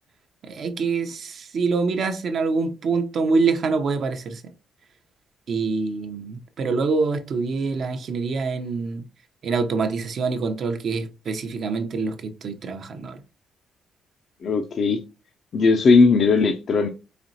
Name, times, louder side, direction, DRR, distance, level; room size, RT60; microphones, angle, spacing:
voice 1, 0.4-4.4 5.5-9.0 9.4-13.2, right 4 dB, 60° right, 0.6 m, -25 dB
voice 2, 14.4-15.0 15.5-16.9, left 4 dB, 55° left, 0.4 m, -18 dB
4.1 x 3.0 x 2.7 m
cardioid pair, 90°, 0 cm